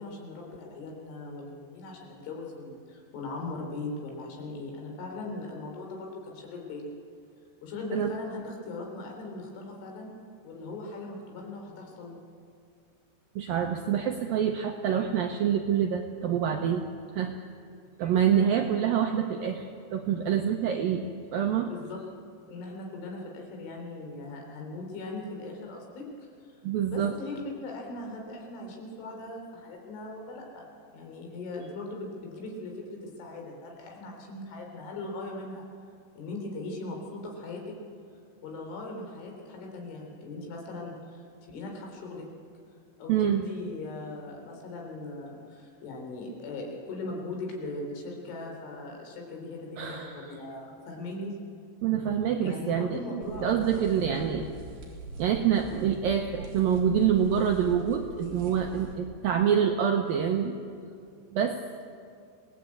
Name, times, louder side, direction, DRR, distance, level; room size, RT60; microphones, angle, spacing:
voice 1, 0.0-6.8 7.6-10.1 10.4-12.2 21.6-22.0 22.5-26.5 26.9-30.7 30.9-35.6 36.2-37.7 38.4-42.3 43.0-51.4 52.4-54.5, left 2 dB, 80° left, 1 dB, 6.0 m, -39 dB
voice 2, 13.4-16.9 17.1-17.3 18.0-19.6 19.9-21.1 21.3-21.7 26.6-27.1 43.1-43.4 49.8-50.3 51.8-53.0 53.4-54.5 55.2-60.6 61.3-61.6, right 8 dB, 80° right, 4 dB, 2.1 m, -26 dB
sound 1, 53.2-59.0, right 2 dB, 50° right, 5.0 m, -44 dB
25.5 x 18.5 x 8.5 m, 2.3 s
omnidirectional pair, 5.4 m